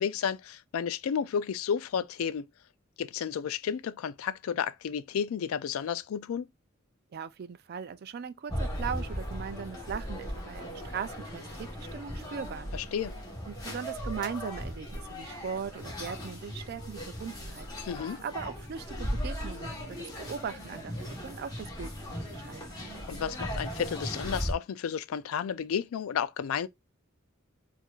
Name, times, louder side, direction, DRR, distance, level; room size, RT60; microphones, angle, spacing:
voice 1, 0.0-2.5 3.0-6.5 12.7-13.2 17.8-18.2 23.1-26.7, left 7 dB, 85° left, 0.4 m, -32 dB
voice 2, 7.1-12.7 13.5-17.7 18.2-22.8, right 6 dB, 50° right, 0.4 m, -39 dB
sound 1, 8.5-24.5, equal, 20° left, 1.3 m, -37 dB
4.4 x 2.6 x 2.4 m
head